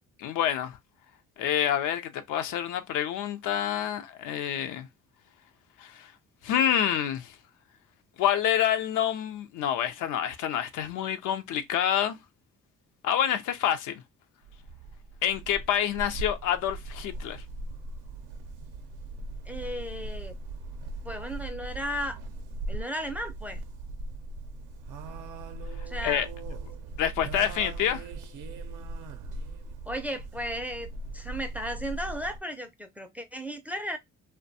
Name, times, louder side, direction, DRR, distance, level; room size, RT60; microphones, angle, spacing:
voice 1, 0.2-0.8 1.4-4.9 5.8-6.1 6.4-7.4 8.2-12.2 13.0-14.0 15.2-17.4 25.8-26.3 27.0-28.1, left 10 dB, 85° left, 0.5 m, -27 dB
sound 1, 14.4-32.4, right 2 dB, 90° right, 0.5 m, -39 dB
voice 2, 19.5-20.4 21.0-22.2 22.7-23.6 25.9-26.3 29.9-34.0, equal, 5° right, 0.4 m, -35 dB
2.5 x 2.2 x 2.6 m
cardioid pair, 90°, 30 cm